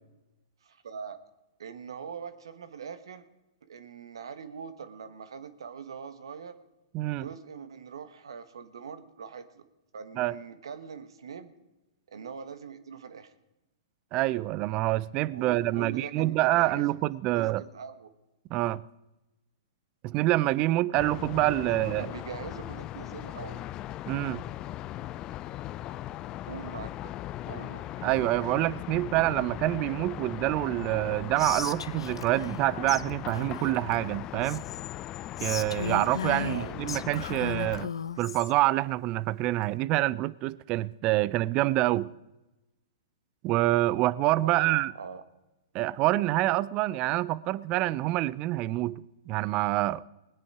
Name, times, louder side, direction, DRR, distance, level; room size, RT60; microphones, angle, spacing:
voice 1, 0.6-1.2 1.6-3.2 3.7-6.6 7.2-9.7 9.9-11.5 12.1-13.3 15.3-17.0 17.3-18.1 21.6-23.6 26.5-27.2 27.4-27.9 36.4-36.9 44.4-45.2, right 6 dB, 70° right, 1.3 m, -42 dB
voice 2, 6.9-7.3 10.2-10.4 14.1-17.6 18.5-18.8 20.0-22.1 24.1-24.4 28.0-34.6 35.4-37.9 38.2-42.1 43.4-44.9 45.7-50.0, right 17 dB, 35° right, 0.5 m, -26 dB
sound 1, 20.9-37.9, left 14 dB, 30° left, 0.4 m, -39 dB
Whispering, 31.4-32.6 32.9-33.0 33.3-34.8 35.4-38.5, left 7 dB, 80° left, 0.6 m, -36 dB
20.0 x 9.6 x 4.8 m
hypercardioid pair, 115°, 3 cm